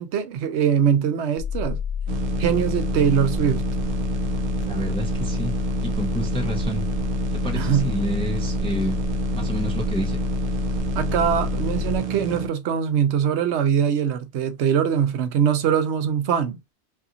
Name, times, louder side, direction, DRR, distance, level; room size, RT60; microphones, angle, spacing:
voice 1, 0.0-1.8 2.4-3.7 7.6-7.9 10.9-16.6, right 8 dB, 80° right, 0.9 m, -22 dB
sound 1, 1.4-12.0, left 6 dB, 75° left, 0.8 m, -28 dB
sound 2, 2.1-12.5, right 6 dB, 55° right, 0.6 m, -29 dB
voice 2, 4.7-6.9 7.4-9.0 9.3-10.2, equal, 10° left, 0.4 m, -30 dB
2.7 x 2.4 x 2.6 m
omnidirectional pair, 1.1 m